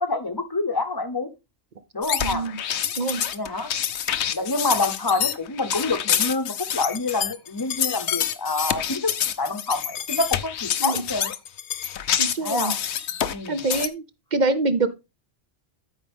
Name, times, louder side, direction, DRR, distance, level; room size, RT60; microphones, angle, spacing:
voice 1, 0.0-1.3 1.9-2.4 3.3-3.7 4.3-11.3 12.4-12.8 13.3-13.6, left 3 dB, 20° left, 0.9 m, -27 dB
sound 1, 2.0-13.9, left 9 dB, 70° left, 1.0 m, -27 dB
voice 2, 2.2-2.6 3.0-3.2 10.8-11.0 12.2-12.8 13.5-14.0 14.3-14.9, right 3 dB, 45° right, 0.8 m, -25 dB
13.0 x 5.1 x 3.5 m
omnidirectional pair, 1.2 m